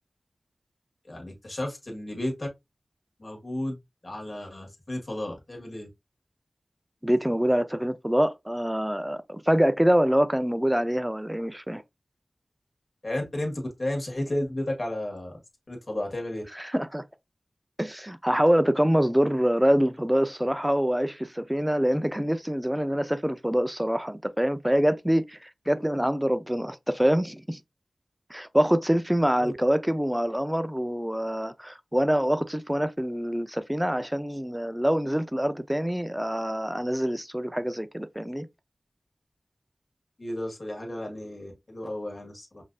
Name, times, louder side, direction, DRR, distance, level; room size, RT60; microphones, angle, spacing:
voice 1, 1.0-2.5 3.2-3.8 4.0-5.9 13.0-15.4 15.7-16.4 29.4-29.5 40.2-42.6, left 1 dB, 50° left, 1.6 m, -33 dB
voice 2, 7.0-11.8 16.6-17.0 17.8-27.6 28.3-38.5, equal, 10° right, 0.5 m, -25 dB
5.3 x 2.6 x 2.3 m
wide cardioid pair, 50°, 0 cm